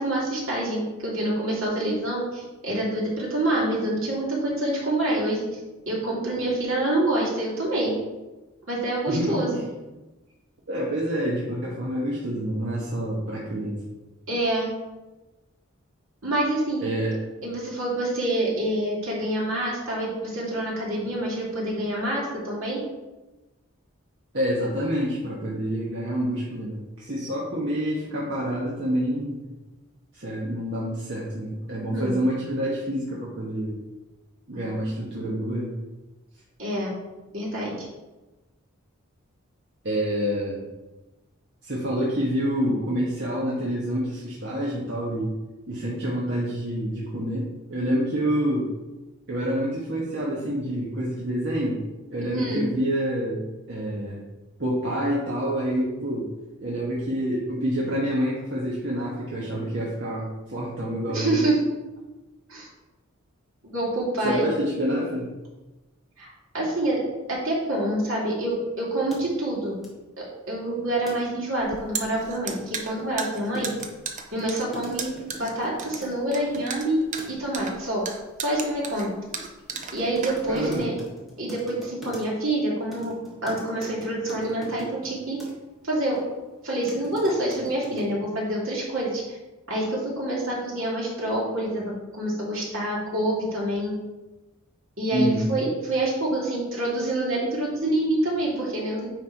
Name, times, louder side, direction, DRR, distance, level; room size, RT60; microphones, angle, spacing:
voice 1, 0.0-5.6 5.9-7.9 8.7-9.6 14.3-14.7 16.2-16.8 17.4-22.8 31.9-32.1 36.6-36.9 37.3-37.7 52.3-52.6 61.1-61.5 62.5-62.7 63.6-64.5 66.2-67.0 67.3-69.7 70.2-73.7 74.3-78.0 78.4-79.1 79.9-80.9 81.4-83.1 83.4-85.4 85.8-86.2 86.6-89.2 89.7-93.9 95.0-99.1, right 1 dB, 70° right, -5 dB, 2.6 m, -27 dB
voice 2, 9.1-9.6 10.7-13.8 16.8-17.2 24.3-29.4 30.1-33.8 34.5-35.7 39.8-40.6 41.6-45.3 45.7-48.7 49.3-51.8 52.1-54.2 54.6-56.3 56.6-61.4 64.2-65.3 80.5-80.9 95.1-95.5, equal, 55° right, -6 dB, 1.4 m, -27 dB
sound 1, 69.1-69.2 69.8-69.9 71.1-71.2 71.4-71.5 71.8-76.7 77.2-77.5 79.4-79.5 79.7-82.5 82.9-85.5 86.1-86.2 86.6-88.1, right 1 dB, ahead, 1.4 m, -42 dB
sound 2, 71.6-80.8, right 5 dB, 35° right, 0.6 m, -35 dB
9.3 x 3.6 x 4.6 m, 1.1 s
head